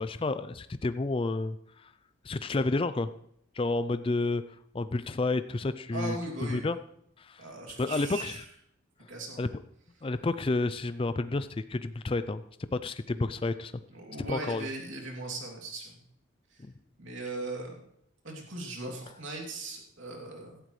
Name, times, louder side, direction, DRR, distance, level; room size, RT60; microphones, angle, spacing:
voice 1, 0.0-1.9 2.2-3.1 3.5-4.4 4.7-6.2 6.5-6.8 7.2-7.5 7.8-8.4 9.4-9.5 10.0-12.4 12.7-13.7 14.2-14.7 16.6-16.7, left 2 dB, 25° left, 12 dB, 0.4 m, -30 dB
voice 2, 5.9-6.7 7.4-8.4 9.1-9.5 13.9-16.0 16.5-16.6 17.0-17.8 18.2-20.6, right 2 dB, 75° right, 0 dB, 2.9 m, -39 dB
16.5 x 12.0 x 3.2 m, 0.72 s
head